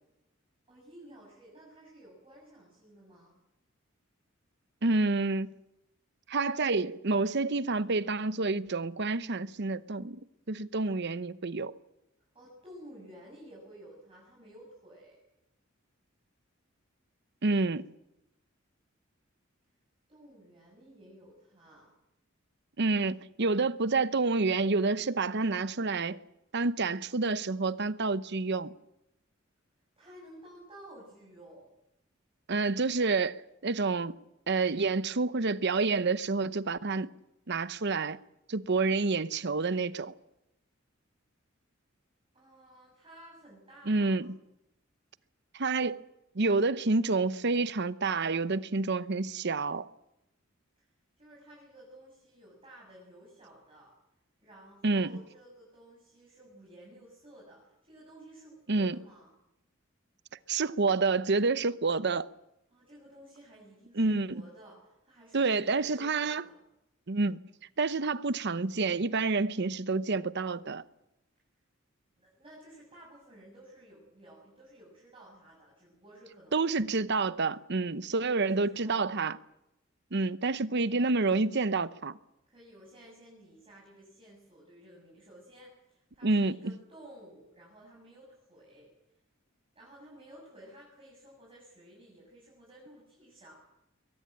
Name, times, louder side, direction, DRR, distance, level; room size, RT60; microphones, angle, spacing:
voice 1, 0.7-3.4 12.3-15.2 20.1-21.9 30.0-31.7 42.3-44.3 50.8-50.9 51.2-53.9 54.4-59.4 62.7-66.6 72.2-76.6 78.3-79.2 82.5-88.9 89.7-93.6, right 1 dB, 25° right, 7.1 m, -54 dB
voice 2, 4.8-5.5 6.3-10.2 10.5-11.7 17.4-17.9 22.8-26.2 26.5-28.7 32.5-34.2 34.5-37.1 37.5-38.2 38.5-40.1 43.9-44.3 45.5-46.0 46.3-49.9 54.8-55.1 58.7-59.0 60.5-62.3 64.0-64.3 65.3-66.4 67.1-67.4 67.8-70.8 76.5-79.4 80.1-82.2 86.2-86.7, right 3 dB, 55° right, 0.9 m, -28 dB
22.5 x 19.0 x 8.9 m
head